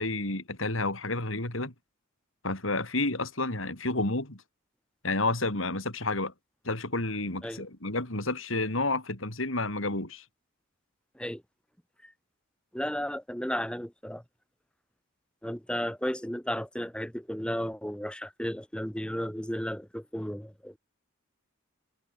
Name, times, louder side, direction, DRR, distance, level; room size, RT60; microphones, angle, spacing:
voice 1, 0.0-1.7 2.4-4.4 5.0-6.3 6.6-10.2, left 2 dB, 75° left, 5.0 m, -30 dB
voice 2, 12.7-14.2 15.4-20.8, equal, 5° left, 5.3 m, -34 dB
head